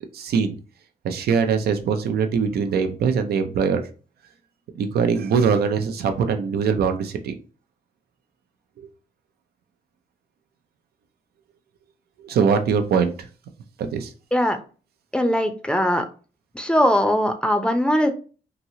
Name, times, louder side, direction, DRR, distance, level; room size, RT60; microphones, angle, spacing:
voice 1, 0.1-0.5 1.0-3.8 4.8-7.3 12.2-13.3 13.8-14.1, right 6 dB, 80° right, 7 dB, 0.5 m, -22 dB
voice 2, 15.1-16.0 16.5-18.1, equal, 5° left, 6 dB, 0.5 m, -20 dB
2.9 x 2.7 x 2.7 m, 0.37 s
cardioid pair, 65°, 16 cm